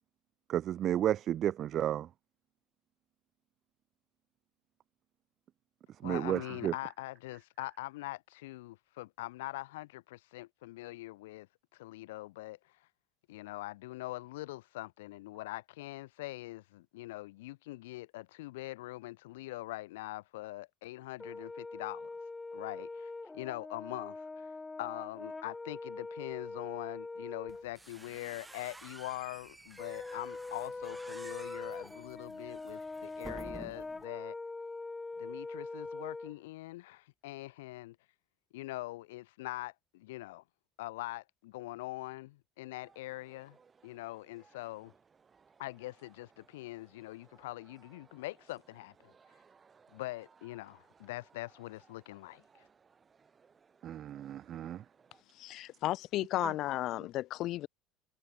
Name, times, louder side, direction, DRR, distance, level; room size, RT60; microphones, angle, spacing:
voice 1, 0.5-2.1 6.0-6.7 53.8-54.8 56.4-56.5, right 11 dB, 50° right, 0.4 m, -32 dB
voice 2, 6.0-11.5 11.7-12.8 13.3-22.1 22.5-24.5 24.8-34.4 35.2-38.0 38.5-40.4 40.8-43.6 43.8-44.9 45.6-49.1 49.9-52.6, left 18 dB, 80° left, 3.1 m, -43 dB
Brass instrument, 21.2-27.7 29.8-36.4, left 3 dB, 15° left, 1.9 m, -43 dB
sound 1, 27.5-34.0, right 2 dB, 15° right, 3.5 m, -51 dB
sound 2, 42.8-55.2, right 5 dB, 30° right, 6.8 m, -65 dB
voice 3, 55.4-57.7, left 15 dB, 60° left, 1.3 m, -34 dB
hypercardioid pair, 85°, 0 cm